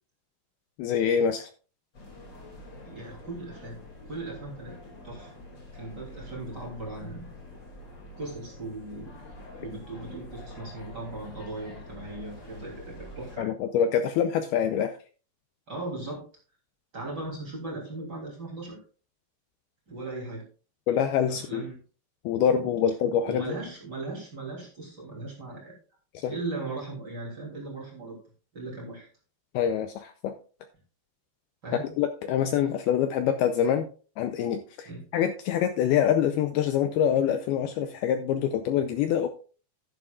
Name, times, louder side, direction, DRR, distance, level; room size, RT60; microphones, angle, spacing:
voice 1, 0.8-1.5 13.4-14.9 20.9-21.6 22.3-23.6 26.1-26.3 29.5-30.3 32.0-33.9 34.2-39.3, left 8 dB, 85° left, 8 dB, 2.2 m, -25 dB
sound 1, 1.9-13.4, left 1 dB, 35° left, 2.1 m, -46 dB
voice 2, 2.8-3.8 4.1-4.8 5.0-5.3 5.7-7.3 8.2-9.1 9.6-13.5 15.7-16.2 16.9-18.8 19.9-20.4 21.3-21.8 22.5-22.7 23.3-25.7 26.2-28.2 28.5-29.1 31.6-31.9 34.8-35.0, right 2 dB, 25° right, -3 dB, 3.0 m, -38 dB
11.5 x 10.5 x 2.4 m, 0.38 s
omnidirectional pair, 5.2 m